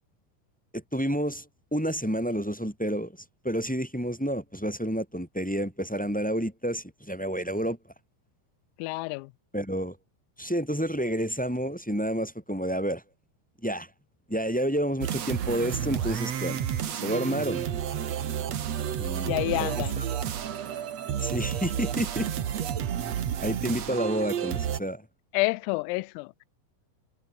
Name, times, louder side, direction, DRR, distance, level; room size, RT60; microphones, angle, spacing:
voice 1, 0.7-1.4 1.7-3.1 3.4-7.8 9.5-9.9 10.4-13.0 13.6-13.9 14.3-16.7 17.0-17.7 19.0-20.0 21.2-22.3 23.4-25.0, equal, ahead, 2.6 m, -29 dB
voice 2, 8.8-9.3 19.2-20.0 25.3-26.5, left 23 dB, 85° left, 3.4 m, -29 dB
sound 1, 15.0-24.8, right 9 dB, 80° right, 1.4 m, -31 dB
omnidirectional pair, 5.9 m